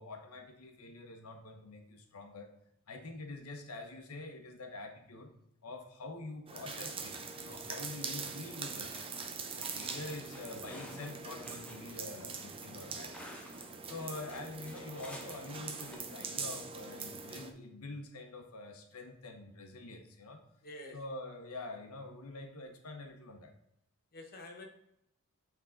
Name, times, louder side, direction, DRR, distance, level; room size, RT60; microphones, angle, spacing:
voice 1, 0.0-2.5 2.9-5.3 5.6-9.1 9.5-13.3 13.8-20.4 20.9-23.5, left 2 dB, 85° left, 4 dB, 0.9 m, -46 dB
sound 1, 6.5-17.5, right 5 dB, 25° right, 0.6 m, -43 dB
voice 2, 8.0-8.4 20.6-21.0 24.1-24.7, left 1 dB, 45° left, 2 dB, 1.0 m, -49 dB
sound 2, 9.2-9.3 9.6-13.7 14.3-16.0, equal, 5° left, 0.8 m, -52 dB
8.3 x 3.6 x 3.7 m, 0.78 s
head